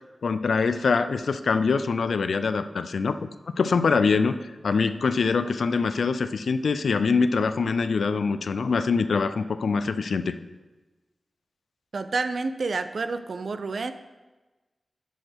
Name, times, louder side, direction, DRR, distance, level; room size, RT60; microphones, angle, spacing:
voice 1, 0.2-3.3 3.6-4.4 4.6-10.3, left 4 dB, 90° left, 11 dB, 0.3 m, -24 dB
voice 2, 11.9-13.9, right 3 dB, 70° right, 10 dB, 0.4 m, -29 dB
9.8 x 6.3 x 3.5 m, 1.2 s
wide cardioid pair, 90°, 0 cm